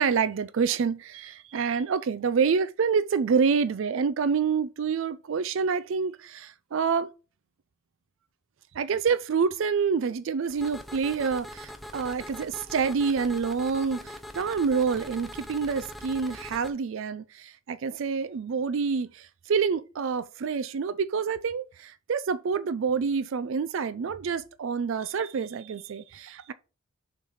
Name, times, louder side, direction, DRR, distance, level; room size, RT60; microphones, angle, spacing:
voice 1, 0.0-7.1 8.7-26.5, right 5 dB, 65° right, 0.4 m, -27 dB
sound 1, 10.5-16.7, left 1 dB, ahead, 0.6 m, -42 dB
6.9 x 3.3 x 5.5 m
head